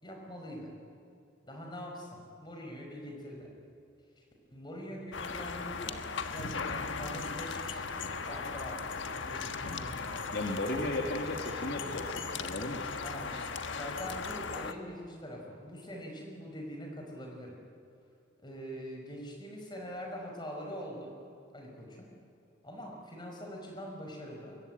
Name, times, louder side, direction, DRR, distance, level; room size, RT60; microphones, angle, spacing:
voice 1, 0.0-0.7 1.4-3.5 4.2-4.3 4.5-6.0 6.3-10.4 13.0-13.4 13.7-17.6 18.4-21.2 21.5-22.1 22.6-24.6, equal, 25° left, 1 dB, 5.2 m, -44 dB
sound 1, 5.1-14.7, left 4 dB, 80° left, 1.4 m, -37 dB
voice 2, 10.3-12.9, left 1 dB, 55° left, 2 dB, 2.0 m, -35 dB
24.5 x 21.5 x 9.1 m, 2.7 s
head